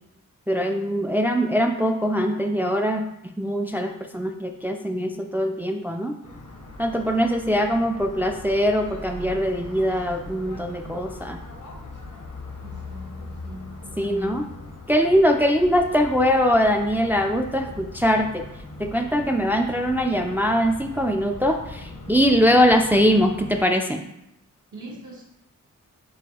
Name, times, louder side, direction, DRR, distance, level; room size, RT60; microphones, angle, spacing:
voice 1, 0.5-3.0 3.4-6.2 6.8-11.4 14.0-14.4 14.9-18.4 18.8-24.0, equal, 5° right, 3 dB, 0.4 m, -22 dB
sound 1, 6.2-23.6, left 2 dB, 75° left, 0.8 m, -40 dB
voice 2, 12.6-14.5 24.7-25.2, equal, 65° right, -3 dB, 1.2 m, -40 dB
6.3 x 2.2 x 2.9 m, 0.82 s
cardioid pair, 40°, 32 cm